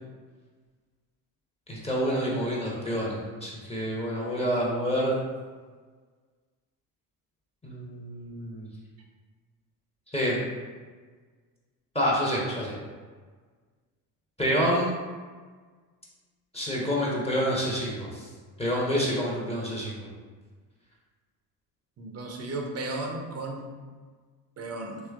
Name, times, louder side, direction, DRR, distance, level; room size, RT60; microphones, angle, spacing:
voice 1, 1.7-5.1 7.6-8.7 10.1-10.4 11.9-12.7 14.4-14.9 16.5-18.3 18.6-20.1, equal, 15° left, -5 dB, 0.8 m, -28 dB
voice 2, 22.0-23.7 24.6-25.0, right 2 dB, 30° right, 2 dB, 0.6 m, -34 dB
3.1 x 3.1 x 2.3 m, 1.5 s
hypercardioid pair, 55°, 49 cm